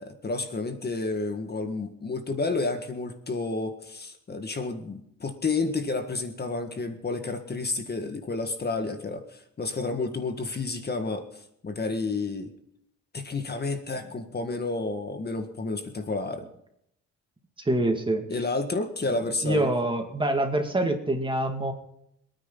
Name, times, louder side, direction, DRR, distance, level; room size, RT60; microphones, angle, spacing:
voice 1, 0.0-12.5 13.1-16.5 18.3-19.7, left 3 dB, 35° left, 6 dB, 1.7 m, -30 dB
voice 2, 17.6-18.2 19.4-21.7, right 1 dB, 15° right, 4 dB, 2.2 m, -25 dB
26.5 x 9.6 x 4.0 m, 0.74 s
cardioid pair, 90°, 30 cm